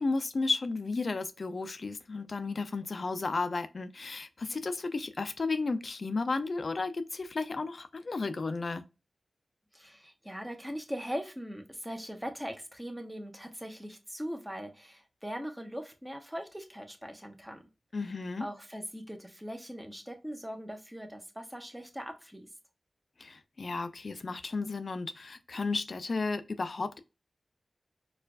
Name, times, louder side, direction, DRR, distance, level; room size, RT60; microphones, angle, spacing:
voice 1, 0.0-8.8 17.9-18.5 23.2-27.0, left 3 dB, 60° left, 0.4 m, -33 dB
voice 2, 9.7-17.7 18.4-22.5, equal, 5° right, 0.9 m, -40 dB
4.4 x 2.4 x 2.2 m
cardioid pair, 50°, 0 cm